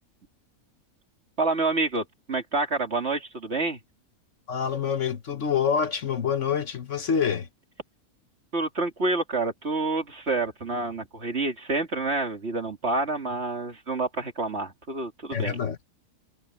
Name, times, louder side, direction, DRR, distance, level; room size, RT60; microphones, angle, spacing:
voice 1, 1.4-3.8 8.5-15.6, right 3 dB, 50° right, 2.9 m, -28 dB
voice 2, 4.5-7.5 15.3-15.8, left 7 dB, 60° left, 1.5 m, -26 dB
omnidirectional pair, 1.5 m